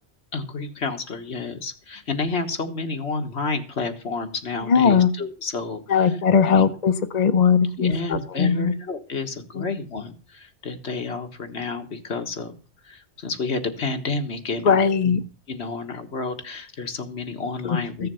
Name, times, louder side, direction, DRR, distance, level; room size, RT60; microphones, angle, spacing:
voice 1, 0.3-6.2 6.5-6.6 7.8-12.5 12.8-15.2 15.5-18.1, left 3 dB, 65° left, 6 dB, 1.7 m, -30 dB
voice 2, 4.7-5.1 5.9-8.7 9.6-9.7 14.6-15.2 17.6-18.1, left 6 dB, 45° left, 11 dB, 0.7 m, -19 dB
15.0 x 6.8 x 6.9 m, 0.39 s
omnidirectional pair, 1.2 m